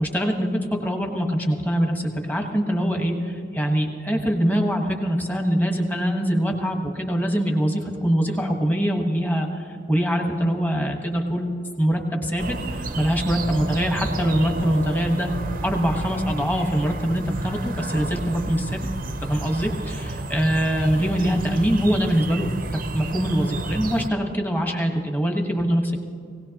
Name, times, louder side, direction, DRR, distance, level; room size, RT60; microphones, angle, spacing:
voice 1, 0.0-11.5 11.8-15.3 15.6-18.9 19.2-26.0, equal, 10° left, 2 dB, 1.3 m, -23 dB
sound 1, 12.4-24.1, right 2 dB, 45° right, 0.7 m, -31 dB
19.5 x 17.5 x 3.0 m, 2.3 s
head